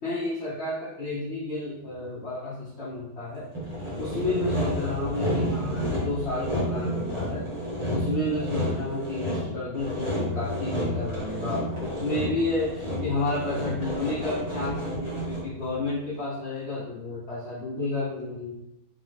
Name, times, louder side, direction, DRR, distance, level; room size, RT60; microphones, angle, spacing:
voice 1, 0.0-3.5 4.0-7.5 7.9-18.6, left 2 dB, 55° left, -9 dB, 0.7 m, -31 dB
Sawing, 3.5-15.6, equal, 50° right, 0.3 m, -30 dB
4.1 x 2.7 x 3.3 m, 0.88 s
omnidirectional pair, 2.3 m